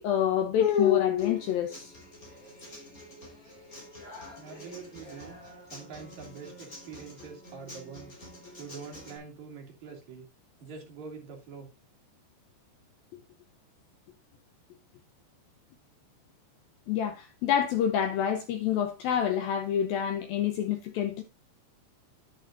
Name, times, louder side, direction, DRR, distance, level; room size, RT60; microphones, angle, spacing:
voice 1, 0.0-1.9 16.9-21.2, left 9 dB, 80° left, 2.2 m, -27 dB
Human voice / Acoustic guitar, 1.2-9.2, left 1 dB, 20° left, 4.2 m, -48 dB
voice 2, 4.4-5.3 5.7-8.2 8.6-10.3 10.6-11.7, right 5 dB, 45° right, 3.4 m, -45 dB
10.5 x 8.8 x 2.5 m
omnidirectional pair, 5.1 m